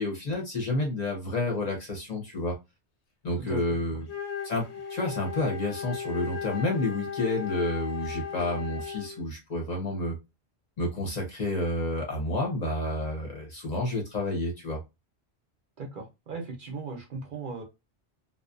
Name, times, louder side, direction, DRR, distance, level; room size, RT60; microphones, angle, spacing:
voice 1, 0.0-2.5 3.2-4.1 4.4-10.1 10.8-14.8, left 1 dB, 45° left, 0 dB, 0.8 m, -30 dB
Wind instrument woodwind instrument, 4.0-9.2, left 7 dB, 80° left, 0.9 m, -36 dB
voice 2, 15.8-17.6, right 4 dB, 55° right, 1 dB, 0.7 m, -37 dB
2.5 x 2.0 x 2.4 m, 0.23 s
omnidirectional pair, 1.1 m